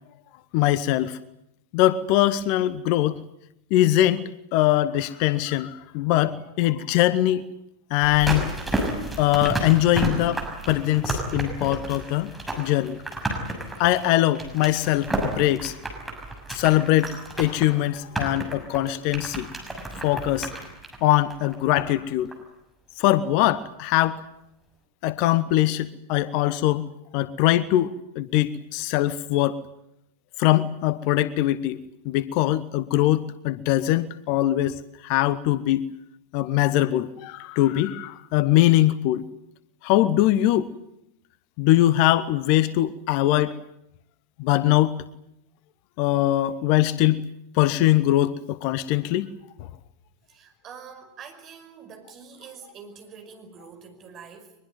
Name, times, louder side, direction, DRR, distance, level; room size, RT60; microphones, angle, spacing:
voice 1, 0.5-1.2 1.7-3.2 3.7-4.2 4.5-7.4 7.9-8.5 9.2-13.0 13.8-15.7 16.5-19.5 20.0-20.5 21.0-22.3 23.0-24.2 25.0-26.9 27.1-29.6 30.4-31.8 32.0-35.9 36.3-39.2 39.8-40.7 41.6-43.6 44.4-45.0 46.0-47.3 47.5-49.3, left 14 dB, 45° left, 1.0 m, -22 dB
sound 1, 8.0-22.0 22.3-22.4, right 1 dB, 5° right, 6.5 m, -31 dB
voice 2, 50.3-54.5, right 6 dB, 30° right, 5.5 m, -45 dB
23.0 x 22.0 x 9.3 m
figure-of-eight pair, 90°, 0 cm